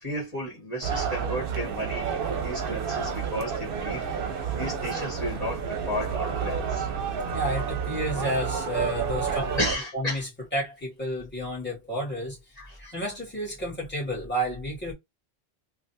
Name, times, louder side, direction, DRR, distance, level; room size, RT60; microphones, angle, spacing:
voice 1, 0.0-4.0 4.6-6.9 9.6-10.2 12.7-12.8, left 1 dB, 40° left, 1.7 m, -33 dB
sound 1, 0.8-9.7, right 6 dB, 65° right, 0.8 m, -30 dB
voice 2, 7.3-9.6 9.9-14.9, equal, 10° left, 1.9 m, -31 dB
3.2 x 2.6 x 2.6 m
omnidirectional pair, 1.1 m